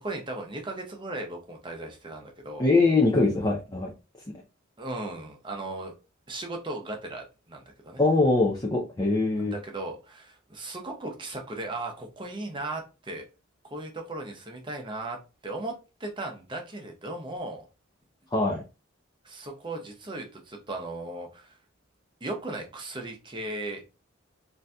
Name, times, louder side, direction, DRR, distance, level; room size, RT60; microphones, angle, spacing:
voice 1, 0.0-2.7 4.8-5.9 6.3-8.0 9.4-13.3 13.7-15.2 15.4-17.6 19.2-21.6 22.2-23.8, right 2 dB, 25° right, 2 dB, 0.7 m, -37 dB
voice 2, 2.6-3.9 8.0-9.5 18.3-18.6, left 3 dB, 20° left, -2 dB, 0.4 m, -22 dB
3.8 x 2.6 x 2.2 m, 0.30 s
head